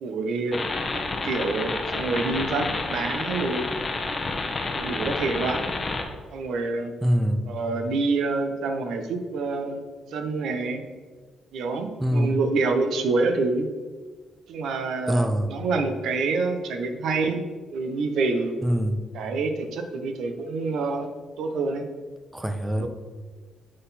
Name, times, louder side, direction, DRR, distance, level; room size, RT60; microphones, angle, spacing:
voice 1, 0.0-0.6 0.9-3.6 4.8-5.6 6.3-6.9 7.5-9.8 10.1-10.8 11.5-13.7 14.5-17.4 17.7-18.5 19.1-21.1 21.4-21.8 22.8-22.9, right 3 dB, 75° right, 6 dB, 0.7 m, -27 dB
sound 1, 0.5-6.0, left 3 dB, 30° left, 0.8 m, -29 dB
voice 2, 7.0-7.5 12.0-12.4 15.1-15.5 18.6-19.1 22.3-22.9, equal, 10° right, 7 dB, 0.5 m, -24 dB
7.6 x 3.9 x 4.2 m, 1.4 s
cardioid pair, 90°, 0 cm